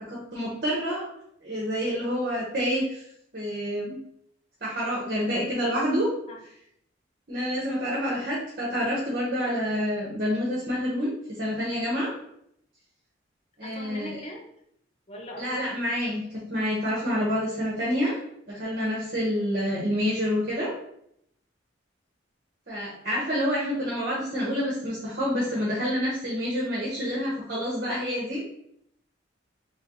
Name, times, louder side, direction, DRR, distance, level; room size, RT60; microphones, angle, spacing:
voice 1, 0.1-1.0 1.4-3.0 3.3-4.0 4.6-6.1 7.3-12.1 13.6-14.2 15.4-18.2 18.5-20.7 22.7-28.4, equal, 50° right, -6 dB, 1.3 m, -28 dB
voice 2, 13.6-14.5 15.1-15.7, left 1 dB, 30° left, -1 dB, 0.9 m, -41 dB
3.6 x 3.5 x 3.9 m, 0.72 s
head